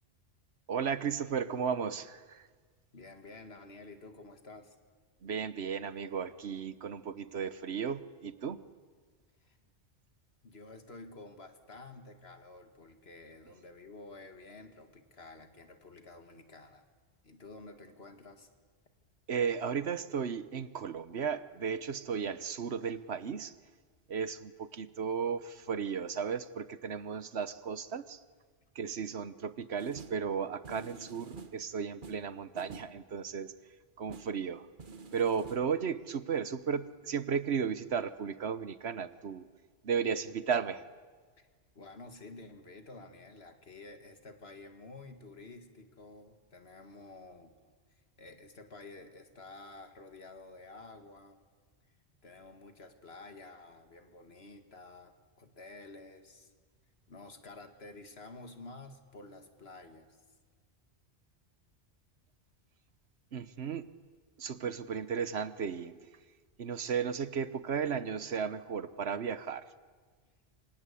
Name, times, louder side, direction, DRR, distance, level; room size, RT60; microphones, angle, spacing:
voice 1, 0.7-2.4 5.2-8.6 19.3-23.5 24.1-28.2 28.7-33.5 34.0-34.6 35.1-39.5 39.8-40.8 63.3-63.9 64.4-66.0 66.6-69.6, right 6 dB, 80° right, 14 dB, 1.3 m, -34 dB
voice 2, 2.9-4.8 9.4-9.6 10.4-16.9 17.2-18.5 41.4-41.5 41.8-47.5 47.9-51.4 51.9-52.0 52.2-56.5 57.1-60.2, left 2 dB, 70° left, 7 dB, 2.2 m, -51 dB
sound 1, 29.8-30.3 30.6-31.7 32.0-33.0 34.1-34.4 34.8-35.7, right 4 dB, 50° right, 1.3 m, -49 dB
27.5 x 25.0 x 8.4 m, 1.5 s
omnidirectional pair, 1.1 m